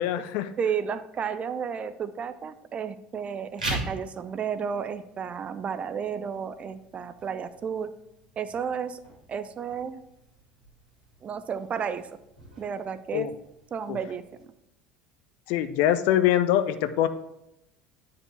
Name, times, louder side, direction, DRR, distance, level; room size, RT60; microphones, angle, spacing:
voice 1, 0.0-0.5 13.1-13.3 13.9-14.0 15.5-17.1, left 12 dB, 55° left, 12 dB, 0.5 m, -23 dB
voice 2, 0.6-7.9 8.4-9.0 9.3-10.0 11.2-12.1 12.6-13.3 13.7-14.2, right 7 dB, 30° right, 13 dB, 0.5 m, -32 dB
sound 1, 3.4-14.4, right 2 dB, 85° right, 2.1 m, -42 dB
9.6 x 4.8 x 3.3 m, 0.84 s
figure-of-eight pair, 65°, 4 cm